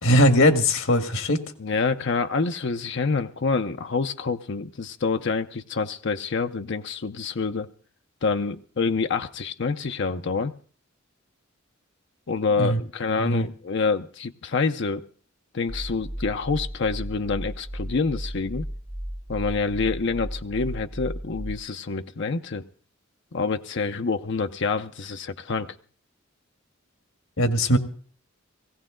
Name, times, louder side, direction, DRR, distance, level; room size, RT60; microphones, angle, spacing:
voice 1, 0.0-1.4 12.6-12.8 13.2-13.5 27.4-27.8, equal, 80° left, 1.8 m, -20 dB
voice 2, 1.6-7.7 8.2-10.5 12.3-15.0 15.5-18.7 19.3-22.6 23.3-25.8, left 4 dB, 60° left, 0.6 m, -27 dB
sound 1, 15.7-21.6, equal, 10° right, 0.7 m, -35 dB
18.5 x 16.5 x 3.8 m
head